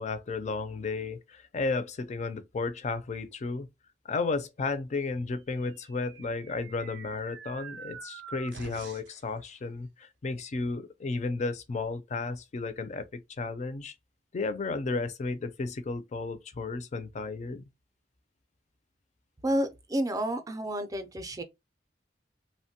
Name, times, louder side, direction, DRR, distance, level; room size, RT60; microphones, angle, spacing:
voice 1, 0.0-3.7 4.0-13.9 14.3-17.6, left 3 dB, 40° left, 0.4 m, -33 dB
sound 1, 5.6-9.2, right 6 dB, 80° right, 0.4 m, -46 dB
voice 2, 19.4-21.4, right 1 dB, 20° right, 0.4 m, -30 dB
2.9 x 2.1 x 2.8 m
head